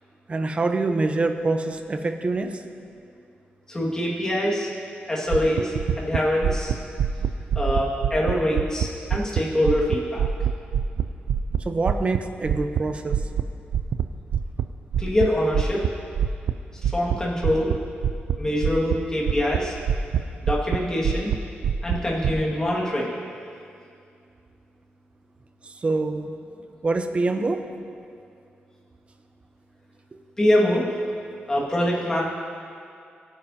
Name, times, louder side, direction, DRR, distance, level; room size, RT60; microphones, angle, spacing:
voice 1, 0.3-2.6 11.6-13.2 25.6-26.3 26.8-27.6, right 3 dB, 30° right, 6 dB, 0.7 m, -25 dB
voice 2, 3.7-4.7 5.1-6.7 7.5-10.3 15.0-15.8 16.8-17.7 18.4-19.7 20.4-21.3 21.8-23.2 30.4-30.9 31.5-32.2, left 1 dB, 15° left, -4 dB, 2.0 m, -24 dB
sound 1, 5.3-9.4 9.7-12.8 13.1-13.4 13.7-14.0 14.3-14.7 14.9-15.3 15.5-16.5 16.8-17.2 17.4-17.8 18.0-18.4 18.6-19.0 19.3-20.2 20.5-20.8 21.0-21.4 21.6-22.3, right 8 dB, 85° right, 0.4 m, -23 dB
23.0 x 8.8 x 2.8 m, 2.4 s
wide cardioid pair, 140°, 4 cm